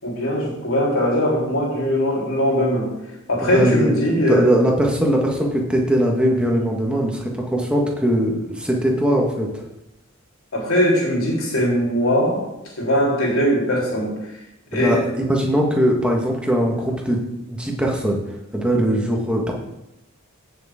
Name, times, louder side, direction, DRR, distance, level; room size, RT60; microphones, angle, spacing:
voice 1, 0.0-2.9 3.3-4.4 10.5-12.4 12.8-14.1 14.7-15.0, equal, 80° left, -3 dB, 3.9 m, -20 dB
voice 2, 3.5-9.6 14.7-17.2 17.5-18.2 18.5-19.5, equal, 5° right, 0 dB, 1.6 m, -20 dB
16.0 x 6.7 x 3.7 m, 0.89 s
head